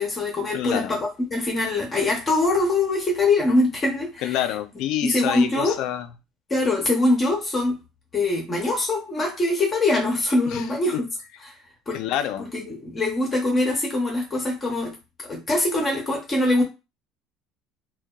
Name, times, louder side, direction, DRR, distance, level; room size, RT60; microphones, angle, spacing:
voice 1, 0.0-4.4 5.0-5.8 6.5-7.8 8.1-11.1 11.9-12.0 12.5-15.0 15.2-16.6, left 2 dB, 20° left, 0.6 m, -23 dB
voice 2, 0.5-0.9 4.2-6.1 10.5-11.0 11.9-12.5, left 11 dB, 60° left, 0.3 m, -27 dB
2.7 x 2.1 x 2.2 m
cardioid pair, 155°, 0 cm